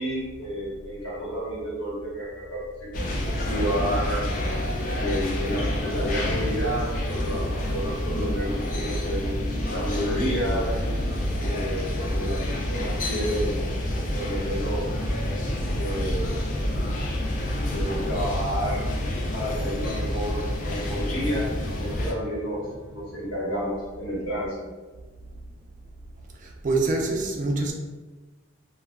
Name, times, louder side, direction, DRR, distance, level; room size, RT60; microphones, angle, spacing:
voice 1, 0.0-4.2 4.9-7.4 7.7-10.7 11.4-13.6 14.1-14.9 15.7-16.4 17.7-18.9 19.3-21.5 21.7-24.6, equal, 85° left, 1.1 m, -30 dB
sound 1, 2.9-22.1, left 1 dB, 40° left, 0.3 m, -28 dB
sound 2, 14.8-23.3, left 1 dB, 20° left, 0.7 m, -40 dB
voice 2, 26.4-27.7, right 3 dB, 40° right, 0.3 m, -25 dB
2.2 x 2.1 x 3.4 m
head